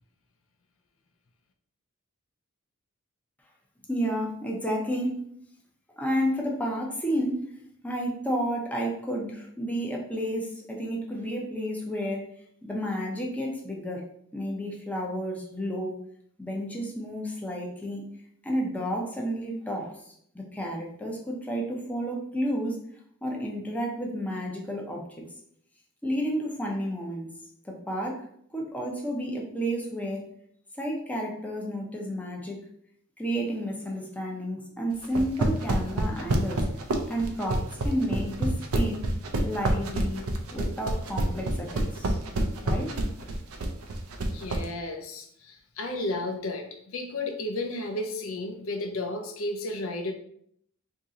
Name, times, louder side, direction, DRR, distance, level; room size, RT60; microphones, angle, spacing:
voice 1, 3.9-5.1 6.0-7.4 7.8-12.2 12.6-14.0 14.3-16.0 16.4-18.1 18.4-22.8 23.2-25.0 26.0-27.3 27.6-28.2 28.5-30.2 30.8-32.6 33.2-36.6 37.1-39.1 39.4-42.2 42.6-43.4, equal, 5° left, -1 dB, 0.6 m, -31 dB
sound 1, 35.0-44.6, right 1 dB, 85° right, 0.5 m, -27 dB
voice 2, 44.3-50.1, left 2 dB, 70° left, 4 dB, 0.5 m, -33 dB
2.9 x 2.7 x 3.6 m, 0.67 s
head